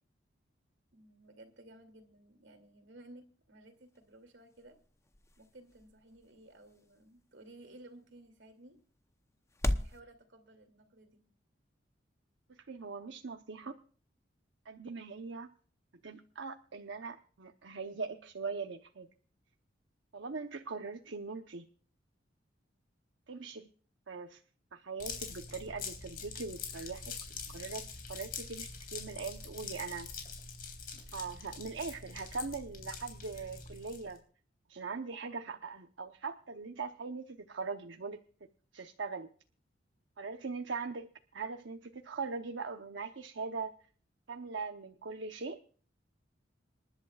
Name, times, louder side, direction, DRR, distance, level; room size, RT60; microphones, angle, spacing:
voice 1, 0.9-4.8 5.4-8.8 9.7-11.2, right 1 dB, 70° right, 5 dB, 2.7 m, -56 dB
sound 1, 3.7-10.0, left 1 dB, 15° left, 0.8 m, -41 dB
voice 2, 12.5-13.8 14.6-15.5 16.0-19.1 20.1-21.6 23.3-23.7 24.1-24.4 24.7-27.1 27.5-30.1 31.1-34.2 34.7-38.2 38.7-39.3 40.2-43.7 44.3-45.6, right 4 dB, 85° right, 5 dB, 0.9 m, -41 dB
sound 2, 25.0-34.2, left 5 dB, 50° left, 3.7 m, -44 dB
27.0 x 11.0 x 2.4 m, 0.43 s
head